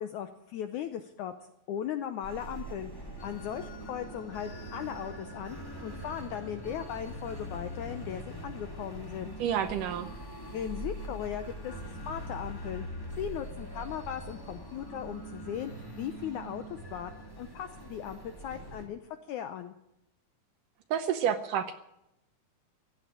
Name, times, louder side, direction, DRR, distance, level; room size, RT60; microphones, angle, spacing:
voice 1, 0.0-1.3 1.7-2.9 3.2-5.6 5.8-9.3 10.5-11.7 12.0-12.9 13.2-15.7 16.0-16.6 16.9-19.7, left 9 dB, 80° left, 9 dB, 1.8 m, -37 dB
sound 1, 2.2-18.9, right 1 dB, 10° left, 1.2 m, -42 dB
voice 2, 9.4-10.1 20.9-21.7, right 9 dB, 75° right, 9 dB, 2.1 m, -29 dB
15.5 x 8.9 x 9.9 m, 0.85 s
omnidirectional pair, 4.3 m